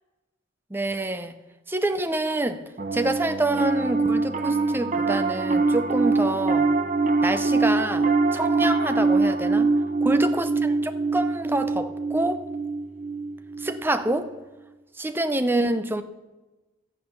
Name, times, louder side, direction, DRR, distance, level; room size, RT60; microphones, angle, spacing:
voice 1, 0.7-1.4 1.7-2.6 2.9-6.7 7.2-9.7 10.0-12.5 13.6-14.3 15.0-16.0, right 1 dB, 10° right, 0.6 m, -27 dB
Piano, 2.8-14.3, right 3 dB, 40° right, 0.8 m, -24 dB
12.0 x 8.8 x 7.1 m
head